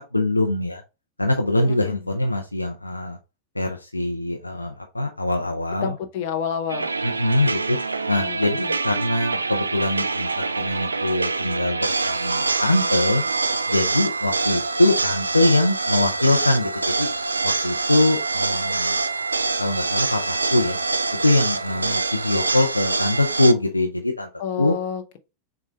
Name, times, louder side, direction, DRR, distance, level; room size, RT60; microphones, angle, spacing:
voice 1, 0.1-0.8 1.2-3.2 3.5-6.0 7.0-7.8 8.1-13.2 13.7-17.1 17.4-19.0 19.6-20.8 21.1-24.3 24.6-24.7, left 2 dB, 85° left, 0.7 m, -23 dB
voice 2, 1.7-2.0 5.8-6.9 8.2-8.7 21.8-21.9 24.4-25.2, left 8 dB, 45° left, 0.9 m, -30 dB
sound 1, 6.7-23.5, right 3 dB, 80° right, 0.4 m, -25 dB
6.4 x 2.4 x 3.4 m
figure-of-eight pair, 90°, 0 cm